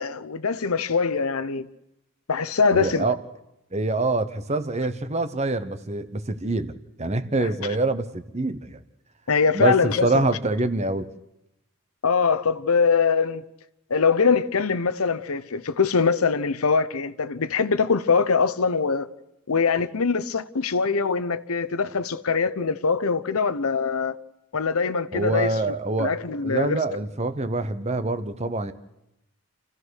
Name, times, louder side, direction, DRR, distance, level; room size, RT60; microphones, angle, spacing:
voice 1, 0.0-1.7 2.3-3.1 7.4-7.5 9.3-10.3 12.0-13.4 13.9-19.1 19.5-24.1 24.5-25.5 26.0-26.8, left 5 dB, 75° left, 0.9 m, -23 dB
voice 2, 2.7-3.2 3.7-8.8 9.5-11.1 25.1-26.2 26.4-28.7, right 2 dB, 30° right, 1.0 m, -25 dB
28.5 x 15.0 x 6.5 m
head